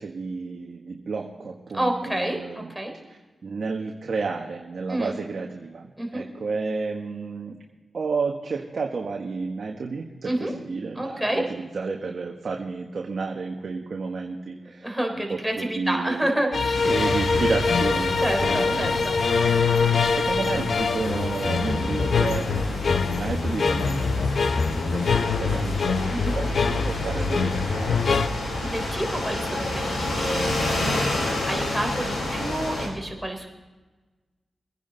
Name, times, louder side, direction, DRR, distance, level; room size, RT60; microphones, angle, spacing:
voice 1, 0.0-2.7 3.1-7.6 7.9-16.4 16.8-19.1 20.1-22.7 23.1-24.1 24.6-28.0, right 4 dB, 65° right, 0 dB, 1.4 m, -31 dB
voice 2, 1.7-2.9 4.9-5.2 6.0-6.2 10.2-10.5 10.9-11.4 14.8-16.8 18.2-19.2 26.1-26.4 28.6-33.5, right 1 dB, 5° right, 2 dB, 3.5 m, -29 dB
sound 1, 16.5-28.3, left 5 dB, 70° left, 0.7 m, -24 dB
sound 2, 16.7-32.9, left 1 dB, 85° left, 5.0 m, -30 dB
23.5 x 10.0 x 4.0 m, 1.2 s
cardioid pair, 60°, 0 cm